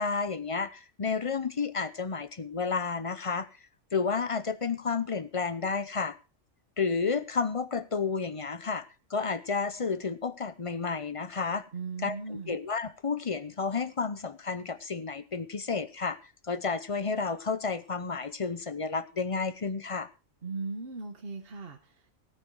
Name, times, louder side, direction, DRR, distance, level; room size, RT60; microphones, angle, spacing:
voice 1, 0.0-3.5 3.9-6.2 6.8-8.9 9.1-11.7 12.0-16.2 16.5-20.1, left 5 dB, 35° left, 14 dB, 0.6 m, -31 dB
voice 2, 11.7-12.6 20.4-22.2, right 4 dB, 45° right, 4 dB, 1.4 m, -38 dB
17.0 x 9.0 x 4.7 m, 0.32 s
omnidirectional pair, 1.3 m